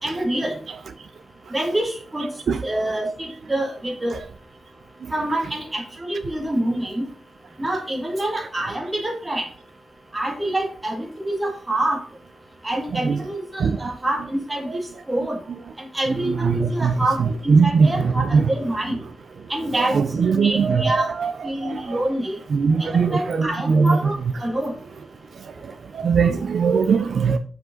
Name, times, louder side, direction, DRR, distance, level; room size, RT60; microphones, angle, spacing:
voice 1, 0.0-0.6 1.5-2.3 2.6-4.2 5.1-7.0 7.6-9.4 10.1-12.0 12.6-14.8 15.1-15.4 15.8-17.2 17.4-19.0 19.5-20.0 20.3-21.1 21.4-22.3 22.8-24.7, right 1 dB, 15° right, 2.3 m, -26 dB
voice 2, 16.1-18.5 19.8-22.0 22.5-24.1 25.9-27.4, right 5 dB, 65° right, 0.5 m, -20 dB
11.0 x 5.1 x 3.9 m
wide cardioid pair, 180°, 0 cm